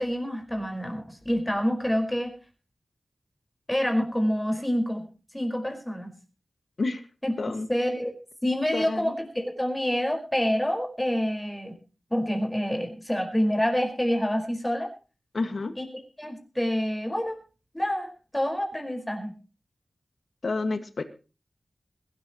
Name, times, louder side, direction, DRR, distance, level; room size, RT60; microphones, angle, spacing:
voice 1, 0.0-2.3 3.7-5.1 5.3-6.1 7.2-7.3 7.7-8.1 8.4-11.8 12.1-14.9 15.8-15.9 16.2-17.4 17.7-19.3, equal, 10° left, 4 dB, 5.0 m, -27 dB
voice 2, 8.7-9.1 15.3-15.7 20.4-21.0, left 3 dB, 60° left, 9 dB, 1.8 m, -29 dB
22.0 x 13.0 x 3.1 m, 0.34 s
wide cardioid pair, 95°, 0 cm